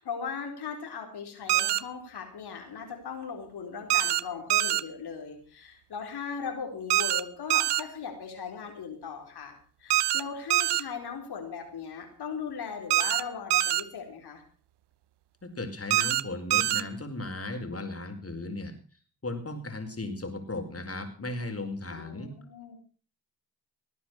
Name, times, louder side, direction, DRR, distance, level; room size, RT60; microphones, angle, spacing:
voice 1, 0.0-14.4 21.9-22.8, left 6 dB, 70° left, 3 dB, 4.3 m, -38 dB
sound 1, 1.5-1.8 3.9-4.2 4.5-4.8 6.9-7.2 7.5-7.8 9.9-10.2 10.5-10.8 12.9-13.2 13.5-13.8 15.9-16.2 16.5-16.8, right 15 dB, 75° right, 0.8 m, -24 dB
voice 2, 15.4-18.7 19.2-22.3, left 2 dB, 35° left, 6 dB, 4.9 m, -36 dB
19.5 x 9.5 x 6.3 m, 0.41 s
supercardioid pair, 40°, 41 cm